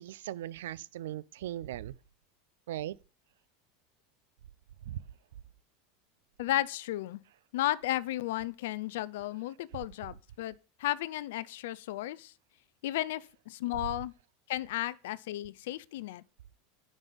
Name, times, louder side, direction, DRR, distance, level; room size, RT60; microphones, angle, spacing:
voice 1, 0.0-2.0 2.7-3.0 4.8-5.0, right 13 dB, 75° right, 0.3 m, -38 dB
voice 2, 6.4-7.2 7.5-10.5 10.8-12.3 12.8-14.1 14.5-16.2, left 15 dB, 70° left, 0.3 m, -34 dB
6.1 x 5.2 x 5.3 m
hypercardioid pair, 85°, 0 cm